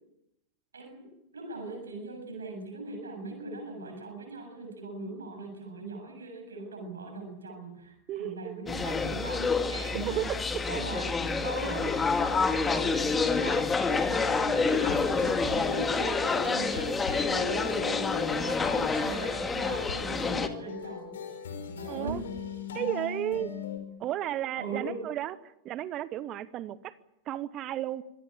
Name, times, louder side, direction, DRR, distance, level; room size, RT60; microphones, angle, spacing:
voice 1, 0.7-10.2 10.7-11.1 11.4-21.1 21.8-22.2 24.6-25.1, right 2 dB, 70° right, 3 dB, 7.4 m, -40 dB
voice 2, 8.1-8.6 9.8-10.4 15.5-15.7 21.9-22.2 22.7-23.5 24.0-27.0 27.3-28.0, right 12 dB, 35° right, 17 dB, 0.9 m, -34 dB
sound 1, 8.7-20.5, left 4 dB, 15° left, 2.2 m, -28 dB
sound 2, 14.1-23.8, left 5 dB, 65° left, 5.4 m, -39 dB
25.5 x 18.0 x 8.7 m, 0.84 s
figure-of-eight pair, 90°, 0 cm